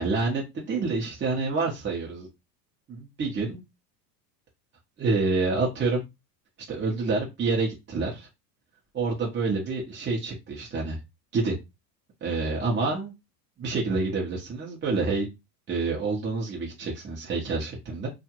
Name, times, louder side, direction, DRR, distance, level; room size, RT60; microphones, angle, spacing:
voice 1, 0.0-2.3 2.9-3.6 5.0-6.0 6.7-8.3 8.9-11.0 11.3-11.5 12.2-13.1 13.6-15.3 15.7-18.1, right 3 dB, 25° right, -3 dB, 0.9 m, -27 dB
2.8 x 2.4 x 2.8 m, 0.22 s
supercardioid pair, 115°, 48 cm